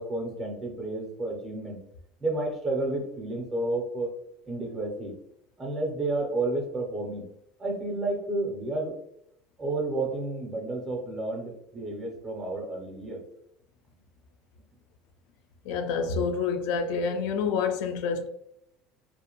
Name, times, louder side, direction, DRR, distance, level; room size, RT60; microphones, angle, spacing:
voice 1, 0.0-1.8 2.2-4.1 4.5-5.1 5.6-7.3 7.6-9.0 9.6-13.2, right 2 dB, 10° right, 0.5 m, -31 dB
voice 2, 15.7-18.3, left 5 dB, 70° left, 0.3 m, -28 dB
2.5 x 2.0 x 2.8 m
cardioid pair, 175°, 0 cm